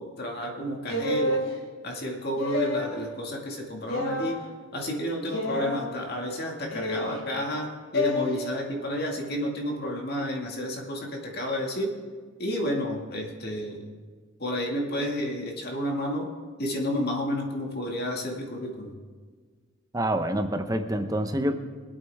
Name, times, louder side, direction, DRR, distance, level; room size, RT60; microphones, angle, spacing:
voice 1, 0.0-1.4 1.8-4.4 4.7-12.0 12.4-13.9 14.4-16.3 16.6-18.9, equal, 50° left, 0 dB, 2.0 m, -31 dB
sound 1, 0.9-1.5 2.3-3.0 3.9-4.3 5.3-5.8 6.7-7.2 7.9-8.3, left 1 dB, 75° left, 3.2 m, -28 dB
voice 2, 19.9-21.6, right 1 dB, 15° right, 7 dB, 0.7 m, -27 dB
23.5 x 8.5 x 3.5 m, 1.5 s
head